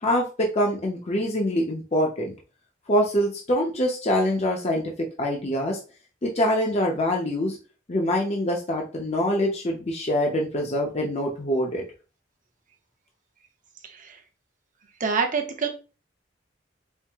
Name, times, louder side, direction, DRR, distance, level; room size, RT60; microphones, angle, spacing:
voice 1, 0.0-2.3 2.9-4.8 5.2-5.8 6.2-7.6 7.9-11.8, equal, 35° left, 0 dB, 0.7 m, -24 dB
voice 2, 13.8-14.2 15.0-15.7, right 5 dB, 45° right, 4 dB, 0.7 m, -26 dB
4.5 x 2.1 x 3.4 m, 0.34 s
head